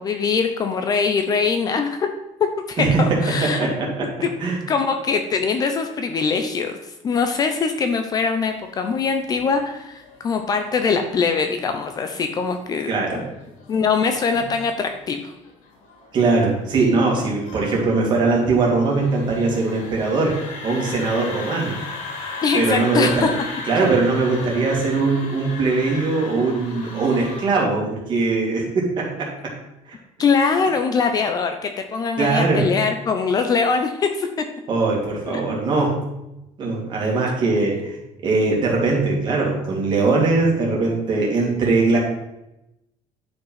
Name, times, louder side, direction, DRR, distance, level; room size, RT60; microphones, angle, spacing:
voice 1, 0.0-2.1 2.7-3.7 4.2-4.3 4.7-6.8 7.0-12.9 13.7-15.3 22.4-23.3 30.2-34.4 35.3-35.4, left 5 dB, 30° left, 6 dB, 0.7 m, -22 dB
voice 2, 2.8-4.1 4.4-4.6 12.9-13.2 16.1-20.4 20.6-21.8 22.5-23.3 23.6-29.5 32.2-32.7 34.7-36.1 36.6-38.0 38.2-42.0, right 3 dB, 35° right, -2 dB, 2.7 m, -21 dB
sound 1, 8.6-27.5, left 3 dB, 70° left, 3.0 m, -37 dB
11.0 x 5.4 x 5.7 m, 0.90 s
cardioid pair, 180°, 14 cm